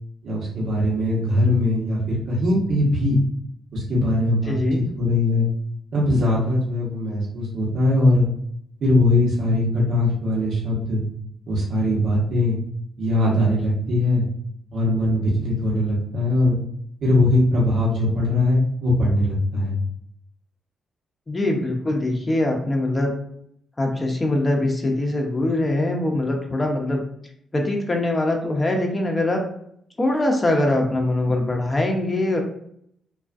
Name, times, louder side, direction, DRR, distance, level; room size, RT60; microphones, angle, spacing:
voice 1, 0.2-3.2 3.7-4.6 4.9-5.5 5.9-8.3 8.8-11.0 11.5-12.6 13.0-14.2 14.7-16.6 17.0-19.8, left 1 dB, 65° right, -5 dB, 0.9 m, -20 dB
voice 2, 4.5-4.8 21.3-23.1 23.8-27.0 27.5-29.4 30.0-32.4, left 1 dB, 30° left, 1 dB, 0.7 m, -22 dB
2.4 x 2.3 x 2.4 m, 0.69 s
hypercardioid pair, 45°, 0 cm